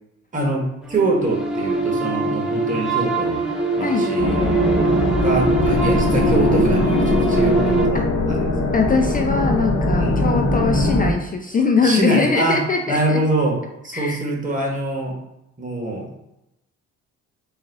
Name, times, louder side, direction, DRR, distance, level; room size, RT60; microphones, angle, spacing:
voice 1, 0.3-3.4 3.7-8.6 9.9-10.2 11.8-15.2 15.6-16.1, right 2 dB, 25° right, -2 dB, 1.4 m, -24 dB
sound 1, 0.8-7.9, right 3 dB, ahead, 0.7 m, -22 dB
sound 2, 4.2-11.1, left 2 dB, 50° left, 1.0 m, -21 dB
voice 2, 8.7-13.2 13.9-14.2, left 4 dB, 30° left, 3 dB, 0.4 m, -21 dB
4.1 x 2.4 x 4.0 m, 0.88 s
cardioid pair, 90°, 30 cm